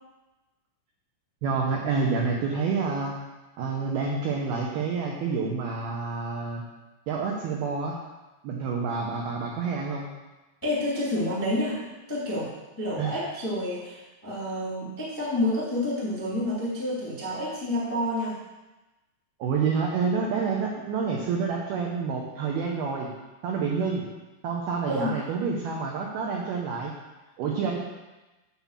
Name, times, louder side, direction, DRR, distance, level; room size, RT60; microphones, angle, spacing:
voice 1, 1.4-3.2 3.6-6.6 7.1-8.0 8.4-10.1 13.0-13.1 19.4-23.1 23.4-24.0 24.4-26.9 27.4-27.8, right 5 dB, 85° right, -1 dB, 2.1 m, -28 dB
voice 2, 10.6-11.8 12.1-12.5 12.8-18.4 24.8-25.2, left 1 dB, 20° left, -8 dB, 0.8 m, -29 dB
12.5 x 4.1 x 7.3 m, 1.1 s
omnidirectional pair, 5.9 m